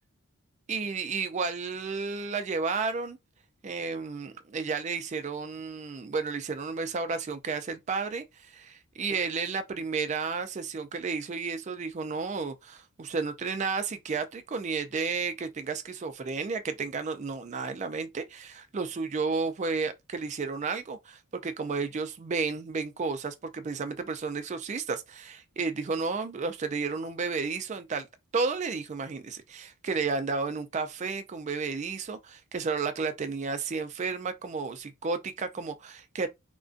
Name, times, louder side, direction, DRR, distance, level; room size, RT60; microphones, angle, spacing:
voice 1, 0.7-3.2 3.6-28.1 28.3-36.3, right 4 dB, 30° right, 0.3 m, -32 dB
2.5 x 2.2 x 2.4 m
head